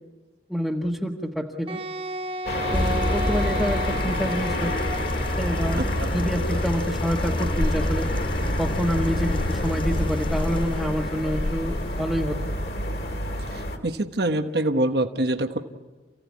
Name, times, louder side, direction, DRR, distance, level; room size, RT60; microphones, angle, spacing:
voice 1, 0.5-1.8 2.7-4.8 5.4-8.1 8.6-12.5, equal, ahead, -1 dB, 1.5 m, -27 dB
Wind instrument woodwind instrument, 1.7-6.0, right 1 dB, 30° right, 0.9 m, -33 dB
sound 1, 2.5-13.8, left 1 dB, 55° left, 2.7 m, -29 dB
sound 2, 2.7-12.0, left 1 dB, 30° left, 0.7 m, -29 dB
voice 2, 13.5-15.6, right 1 dB, 65° right, 6 dB, 1.2 m, -25 dB
29.0 x 16.5 x 9.6 m, 1.3 s
head